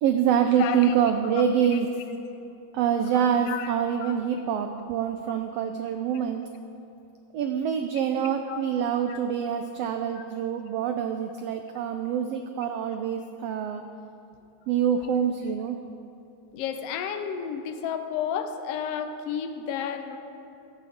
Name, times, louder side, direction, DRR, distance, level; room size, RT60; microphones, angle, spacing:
voice 1, 0.0-1.9 2.7-6.4 7.3-13.8 14.7-15.8, right 8 dB, 85° right, 6 dB, 1.4 m, -26 dB
voice 2, 0.6-0.9 1.4-1.5 1.7-1.8 3.1-3.7 4.0-4.1 8.5-8.6 9.1-9.2 10.2-10.3 16.5-20.2, left 8 dB, 80° left, 8 dB, 1.4 m, -32 dB
17.5 x 10.5 x 3.6 m, 2.8 s
omnidirectional pair, 3.4 m